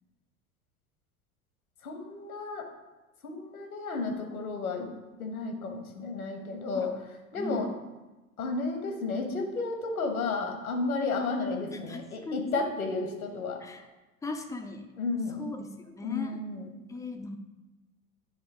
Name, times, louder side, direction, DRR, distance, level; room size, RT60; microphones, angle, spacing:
voice 1, 1.8-2.7 3.2-4.9 5.2-6.9 7.3-7.7 8.4-13.6 15.0-15.5 16.0-16.7, left 3 dB, 75° left, 3 dB, 1.3 m, -32 dB
voice 2, 7.4-7.7 11.7-12.5 13.6-13.8 14.2-14.9 15.4-16.4 16.9-17.4, left 2 dB, 10° left, 5 dB, 0.4 m, -38 dB
9.4 x 3.4 x 4.7 m, 1.1 s
figure-of-eight pair, 80°, 43 cm